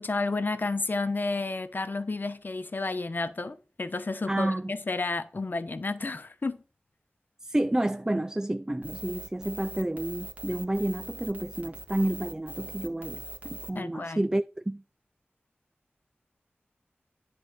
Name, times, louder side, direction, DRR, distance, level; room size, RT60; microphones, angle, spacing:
voice 1, 0.0-6.6 13.7-14.2, left 3 dB, 50° left, 0.8 m, -31 dB
voice 2, 4.3-4.7 7.4-14.8, right 1 dB, 15° right, 0.3 m, -30 dB
sound 1, 8.8-13.7, right 1 dB, 40° right, 1.6 m, -41 dB
10.0 x 3.8 x 6.5 m
wide cardioid pair, 70°, 4 cm